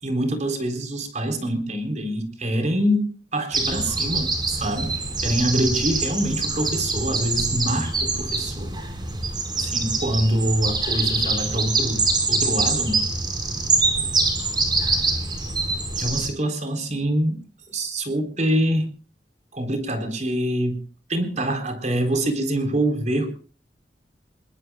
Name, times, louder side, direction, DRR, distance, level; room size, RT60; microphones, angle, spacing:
voice 1, 0.0-4.9 5.2-8.7 9.5-13.0 16.0-17.4 17.7-18.9 19.5-20.8 21.1-23.3, right 1 dB, 40° right, 6 dB, 3.8 m, -25 dB
sound 1, 3.5-16.3, right 3 dB, 25° right, 4.9 m, -24 dB
26.5 x 22.0 x 2.3 m, 0.36 s
head